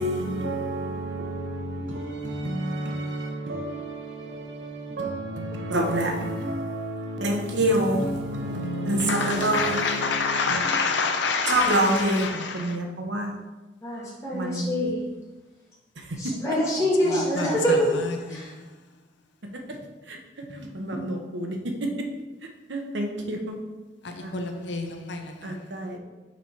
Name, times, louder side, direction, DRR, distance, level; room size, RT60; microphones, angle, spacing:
voice 1, 0.0-10.6 11.5-13.3 14.3-14.9 20.1-20.2 20.5-21.6 22.7-23.5 24.2-24.3 25.4-26.0, right 1 dB, 85° right, 0.9 m, -28 dB
voice 2, 9.0-12.8 17.4-17.5 24.3-25.3, left 4 dB, 80° left, 0.7 m, -27 dB
voice 3, 12.4-12.7 13.8-15.0 16.2-17.9 18.3-18.5, equal, 15° left, 2.1 m, -25 dB
6.0 x 4.5 x 4.2 m
head